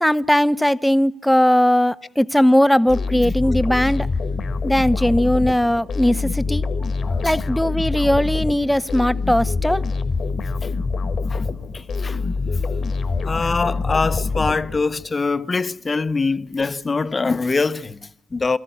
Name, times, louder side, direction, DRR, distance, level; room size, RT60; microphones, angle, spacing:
voice 1, 0.0-4.1 4.6-6.6 7.2-9.8, equal, 5° left, 0.8 m, -18 dB
sound 1, 2.9-15.1, left 4 dB, 55° left, 1.5 m, -25 dB
voice 2, 7.0-7.4 10.6-10.7 11.3-11.5 11.7-12.2 13.2-18.6, left 4 dB, 35° left, 0.8 m, -23 dB
23.0 x 14.5 x 9.4 m
hypercardioid pair, 45°, 0 cm